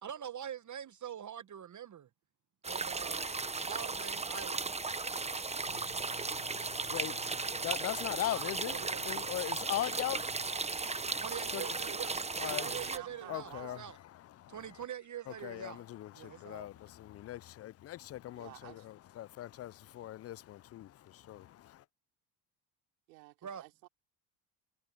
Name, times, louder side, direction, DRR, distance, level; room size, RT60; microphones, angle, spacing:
voice 1, 0.0-2.1 2.6-4.6 8.3-9.3 11.2-14.0 14.5-15.8 16.1-16.7 23.4-23.6, right 9 dB, 35° right, 1.0 m, -45 dB
sound 1, 2.6-13.0, right 3 dB, 15° right, 1.0 m, -36 dB
sound 2, 5.6-11.2 11.6-12.1 12.6-13.2 13.5-14.2 14.5-15.2, left 13 dB, 65° left, 7.5 m, -58 dB
voice 2, 6.7-11.3 11.5-11.7 12.4-12.7 13.3-13.8 14.1-14.6 15.3-21.8, left 13 dB, 35° left, 0.4 m, -40 dB
voice 3, 12.5-13.8 18.3-18.9 23.1-23.9, right 23 dB, 90° right, 5.0 m, -51 dB
supercardioid pair, 70°, 50 cm